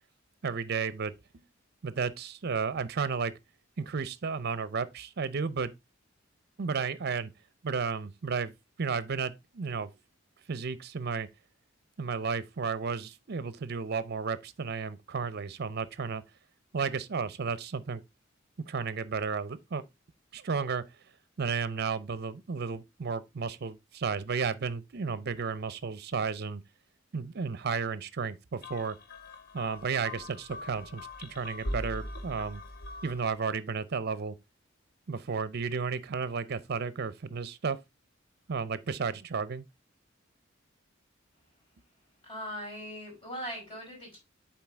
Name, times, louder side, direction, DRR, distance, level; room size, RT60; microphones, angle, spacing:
voice 1, 0.4-1.4 1.8-3.3 3.8-5.7 6.6-7.3 7.6-8.5 8.8-9.9 10.5-11.3 12.0-16.2 16.7-18.0 18.7-19.8 20.3-20.8 21.4-26.6 27.1-29.0 29.5-32.6 33.0-34.4 35.1-37.8 38.5-39.6, right 5 dB, 55° right, 0.6 m, -33 dB
sound 1, 28.6-33.4, left 1 dB, 55° left, 1.2 m, -41 dB
voice 2, 42.2-44.2, equal, 25° left, 5.1 m, -40 dB
7.6 x 4.5 x 3.4 m
head